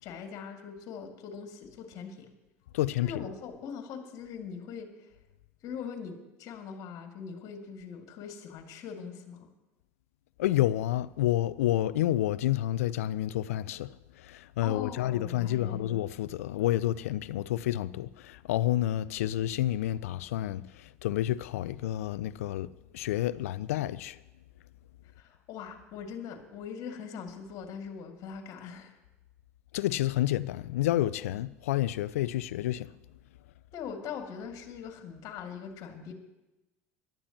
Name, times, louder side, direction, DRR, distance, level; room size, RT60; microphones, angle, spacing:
voice 1, 0.0-2.3 3.0-5.1 5.6-9.5 14.6-15.8 25.2-28.9 33.7-36.1, left 6 dB, 50° left, 2.3 m, -41 dB
voice 2, 2.7-3.2 10.4-24.2 29.7-32.9, left 14 dB, 70° left, 0.5 m, -29 dB
26.0 x 12.0 x 3.0 m
hypercardioid pair, 70°, 8 cm